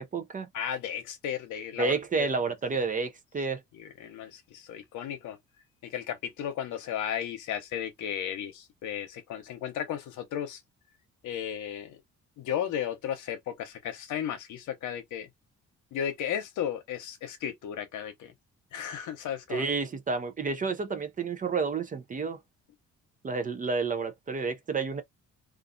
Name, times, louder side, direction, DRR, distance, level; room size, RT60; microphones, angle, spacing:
voice 1, 0.0-0.5 1.8-3.6 19.5-22.4 23.2-25.0, right 4 dB, 25° right, 0.4 m, -30 dB
voice 2, 0.5-2.3 3.7-5.4 5.8-10.6 11.2-12.0 12.4-15.3 15.9-18.3 18.7-19.7, left 9 dB, 80° left, 0.8 m, -34 dB
2.5 x 2.3 x 2.5 m
cardioid pair, 90°, 30 cm